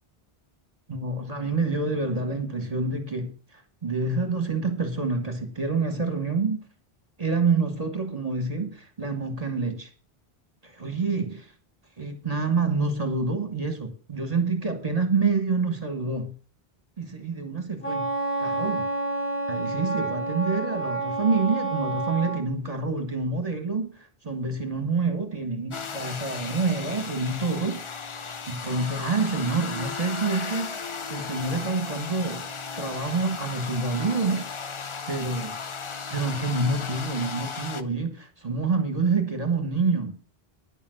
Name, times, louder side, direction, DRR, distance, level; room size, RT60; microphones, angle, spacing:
voice 1, 0.9-6.6 7.2-9.9 10.6-11.5 12.0-16.3 17.0-18.1 18.4-18.9 19.5-27.8 28.5-30.8 31.1-32.5 32.7-34.4 35.1-35.5 36.1-40.2, right 4 dB, 40° right, 1.6 m, -27 dB
Wind instrument woodwind instrument, 17.8-22.4, right 3 dB, 90° left, 4.8 m, -29 dB
sound 1, 25.7-37.8, left 5 dB, 35° left, 0.6 m, -36 dB
10.0 x 7.1 x 6.4 m
omnidirectional pair, 1.0 m